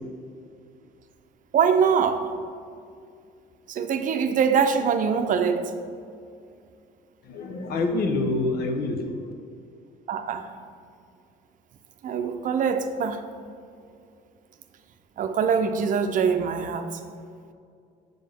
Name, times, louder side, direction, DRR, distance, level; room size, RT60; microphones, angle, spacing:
voice 1, 1.5-2.3 3.7-5.7 10.1-10.5 12.0-13.2 15.2-16.9, right 6 dB, 50° right, 7 dB, 0.6 m, -23 dB
voice 2, 7.3-9.3, left 2 dB, 65° left, 5 dB, 1.0 m, -26 dB
7.6 x 7.4 x 3.5 m, 2.3 s
cardioid pair, 110°, 17 cm